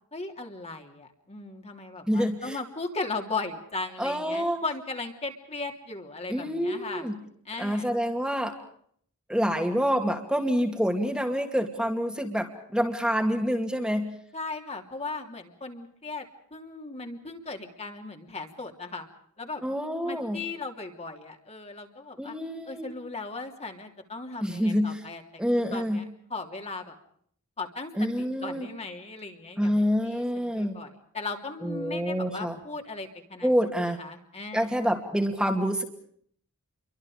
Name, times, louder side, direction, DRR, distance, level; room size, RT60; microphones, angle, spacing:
voice 1, 0.1-7.0 7.4-7.9 14.3-19.1 19.4-19.6 20.0-22.4 22.7-25.4 25.7-26.9 27.6-27.9 28.2-33.5 33.8-34.7, left 3 dB, 30° left, 3 dB, 3.1 m, -37 dB
voice 2, 2.1-2.6 4.0-4.6 6.3-7.1 7.6-8.5 9.3-14.1 19.6-20.4 22.2-22.9 24.4-25.0 25.4-26.0 28.0-28.7 29.6-30.8 31.6-32.6 33.4-34.0 34.5-35.8, equal, 5° right, 3 dB, 2.6 m, -27 dB
29.5 x 24.0 x 5.0 m, 0.63 s
head